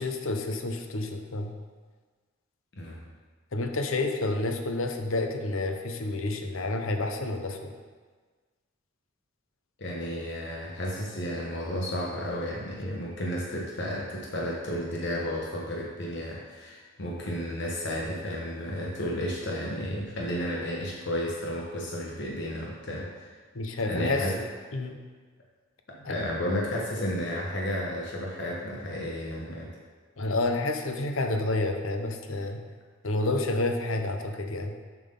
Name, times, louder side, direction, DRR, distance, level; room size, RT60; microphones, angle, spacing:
voice 1, 0.0-1.5 3.5-7.7 23.5-24.3 24.7-25.0 26.0-26.2 30.2-32.6 33.0-34.7, left 2 dB, 80° left, 5 dB, 0.9 m, -29 dB
voice 2, 9.8-23.4 23.9-24.4 25.9-29.7, equal, 60° left, -3 dB, 1.1 m, -32 dB
7.3 x 6.1 x 5.4 m, 1.5 s
head